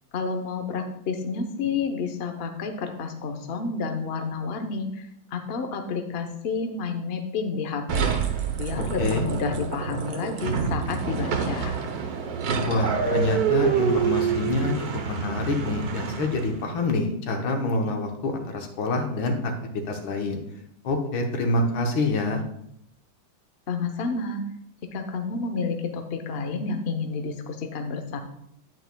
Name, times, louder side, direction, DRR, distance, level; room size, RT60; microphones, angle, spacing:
voice 1, 0.1-8.1 8.6-11.8 23.7-24.4 24.9-28.2, left 4 dB, 55° left, 5 dB, 0.6 m, -30 dB
sound 1, 7.9-16.6, right 7 dB, 60° right, 1.2 m, -27 dB
voice 2, 9.0-9.3 12.6-19.5 19.9-20.4 20.8-22.4, left 2 dB, 80° left, 3 dB, 1.9 m, -26 dB
9.2 x 8.7 x 2.2 m, 0.74 s
omnidirectional pair, 2.1 m